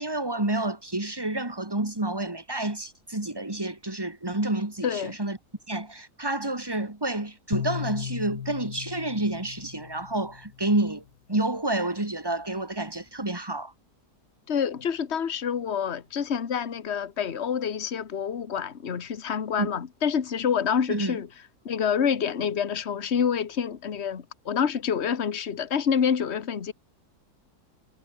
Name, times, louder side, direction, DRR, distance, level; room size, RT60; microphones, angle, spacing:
voice 1, 0.0-5.4 5.7-13.7 19.6-19.7 20.9-21.2, right 2 dB, 15° right, 2.7 m, -29 dB
sound 1, 7.5-10.8, left 9 dB, 75° left, 1.8 m, -36 dB
voice 2, 14.5-21.3 21.6-26.7, left 7 dB, 40° left, 1.6 m, -27 dB
omnidirectional pair, 1.8 m